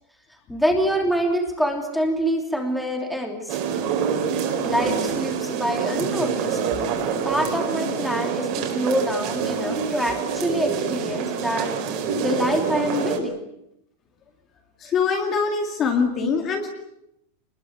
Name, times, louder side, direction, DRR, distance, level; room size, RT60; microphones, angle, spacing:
voice 1, 0.5-3.6 4.6-6.6 7.2-11.7 12.2-13.4 16.2-16.3, equal, ahead, 2 dB, 2.9 m, -25 dB
sound 1, 3.5-13.2, right 6 dB, 40° right, 4.6 m, -26 dB
voice 2, 14.8-16.7, left 5 dB, 20° left, 3 dB, 2.3 m, -23 dB
26.5 x 21.0 x 8.1 m, 0.80 s
supercardioid pair, 175°, 0 cm